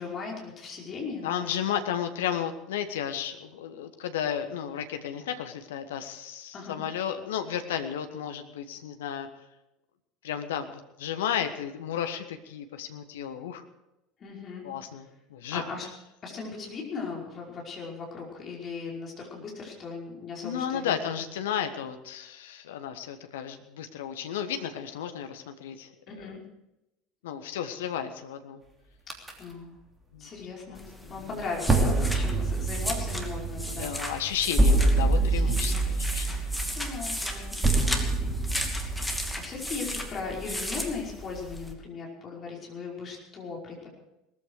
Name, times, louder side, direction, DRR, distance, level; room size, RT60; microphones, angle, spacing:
voice 1, 0.0-1.6 6.5-6.8 14.2-14.6 15.5-15.8 16.2-21.1 26.1-26.4 29.4-29.8 30.2-30.8 31.1-34.0 34.4-34.6 35.0-35.8 36.1-38.7 38.9-39.1 39.4-43.9, left 4 dB, 35° left, -2 dB, 5.3 m, -38 dB
voice 2, 1.2-9.3 10.2-13.6 14.6-15.6 20.4-25.9 27.2-28.6 30.1-30.3 33.8-35.7 36.0-36.6, left 9 dB, 65° left, 8 dB, 1.4 m, -33 dB
sound 1, 29.1-29.3 31.7-39.4, right 2 dB, 15° right, 3.0 m, -26 dB
sound 2, 30.7-41.7, left 1 dB, 5° left, 2.6 m, -36 dB
19.0 x 14.5 x 4.9 m, 0.91 s
figure-of-eight pair, 70°, 0 cm